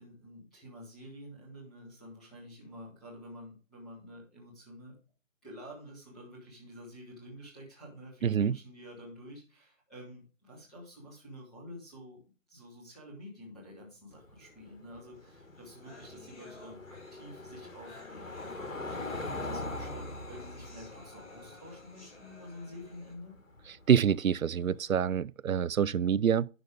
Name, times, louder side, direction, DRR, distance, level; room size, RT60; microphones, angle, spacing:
voice 1, 0.0-4.9 5.4-12.2 12.5-23.3, equal, ahead, 0.9 m, -49 dB
voice 2, 8.2-8.6 23.9-26.5, right 8 dB, 85° right, 0.5 m, -26 dB
Car passing by / Engine, 14.1-24.8, left 2 dB, 75° left, 1.7 m, -43 dB
sound 1, 15.3-15.4 15.5-23.1, left 1 dB, 25° left, 5.4 m, -54 dB
11.0 x 6.4 x 3.6 m
figure-of-eight pair, 155°, 40 cm